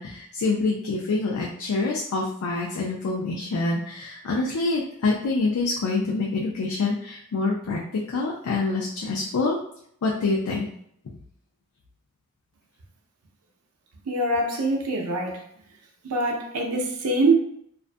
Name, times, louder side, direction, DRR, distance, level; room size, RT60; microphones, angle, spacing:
voice 1, 0.0-9.6 10.0-10.7, left 3 dB, 75° left, -2 dB, 0.4 m, -26 dB
voice 2, 14.1-15.4 16.0-17.3, right 2 dB, 90° right, 1 dB, 0.5 m, -24 dB
2.4 x 2.2 x 2.5 m, 0.67 s
head